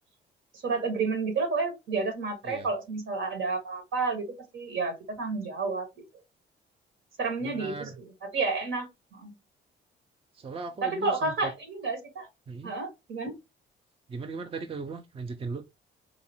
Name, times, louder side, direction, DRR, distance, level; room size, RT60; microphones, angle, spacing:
voice 1, 0.5-4.2 4.5-5.9 7.2-9.3 10.8-12.3 12.6-13.3, right 4 dB, 75° right, 1.5 m, -30 dB
voice 2, 7.4-8.0 10.4-11.5 12.5-12.7 14.1-15.6, right 3 dB, 30° right, 0.5 m, -37 dB
4.9 x 2.5 x 2.8 m
cardioid pair, 90°, 20 cm